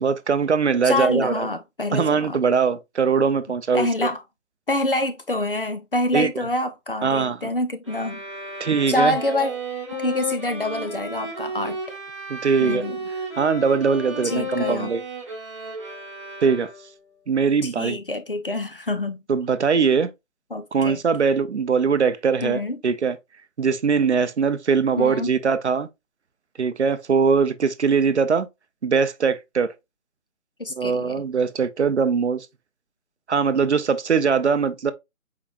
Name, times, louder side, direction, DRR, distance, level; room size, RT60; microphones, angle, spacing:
voice 1, 0.0-1.5 1.9-3.9 6.1-6.3 7.0-7.5 8.6-9.2 12.3-12.8 13.4-15.0 16.4-16.7 17.3-18.0 19.3-20.1 20.7-23.2 23.6-25.9 26.6-28.5 28.8-29.7 30.8-32.5 33.3-34.9, right 5 dB, 60° right, 0.5 m, -21 dB
voice 2, 0.8-2.4 3.7-4.2 4.7-8.2 8.9-9.5 9.9-11.8 12.6-13.0 14.2-14.9 17.6-19.2 20.5-21.0 22.4-22.8 25.0-25.3 30.6-31.2, left 1 dB, 45° left, 0.5 m, -26 dB
sound 1, 7.8-17.1, equal, 25° right, 1.0 m, -33 dB
4.7 x 3.6 x 2.3 m
hypercardioid pair, 170°, 40 cm